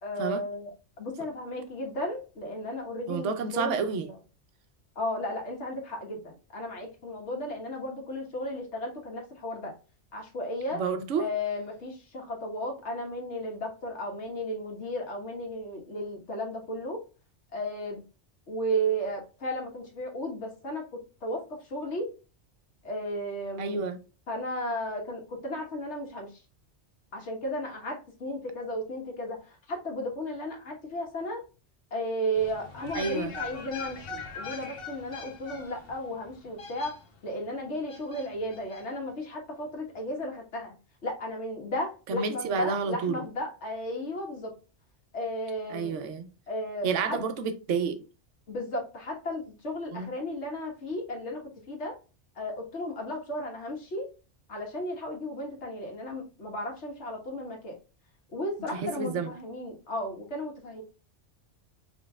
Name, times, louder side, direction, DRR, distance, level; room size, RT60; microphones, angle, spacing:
voice 1, 0.0-4.2 4.9-9.8 10.1-10.8 11.2-17.0 17.5-18.0 18.5-20.9 21.2-22.1 22.8-23.8 24.3-26.4 27.1-31.4 31.9-40.7 41.0-44.5 45.1-46.0 46.5-47.2 48.5-52.0 52.3-54.1 54.5-57.8 58.3-60.8, equal, 70° left, 1.7 m, -34 dB
voice 2, 3.1-4.1 10.7-11.3 23.6-24.0 32.9-33.3 42.1-43.2 45.7-46.3 46.8-48.0 49.9-50.1 58.7-59.3, right 5 dB, 90° right, 1.1 m, -30 dB
sound 1, 32.3-37.4 37.9-38.8 39.1-39.2, left 5 dB, 55° left, 1.1 m, -41 dB
5.2 x 3.6 x 2.3 m
omnidirectional pair, 1.2 m